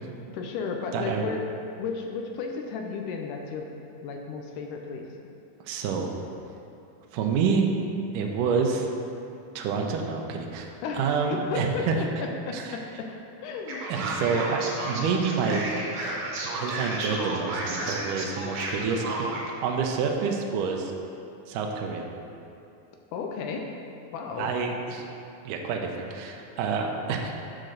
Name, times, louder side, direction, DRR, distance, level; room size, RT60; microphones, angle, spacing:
voice 1, 0.1-1.4 1.8-3.7 4.0-5.1 10.8-13.9 23.1-23.7 24.1-24.5, left 5 dB, 85° left, 2 dB, 1.8 m, -34 dB
voice 2, 0.9-1.3 5.6-6.1 7.1-7.7 8.1-8.9 9.6-12.0 12.5-12.8 13.9-15.8 16.6-19.3 19.6-20.9 21.5-22.0 24.4-25.0 25.4-27.4, right 5 dB, 80° right, 2 dB, 2.0 m, -28 dB
Male speech man speaking, 13.7-19.5, right 2 dB, 65° right, 1.8 m, -32 dB
7.5 x 3.9 x 6.5 m, 2.7 s
omnidirectional pair, 4.3 m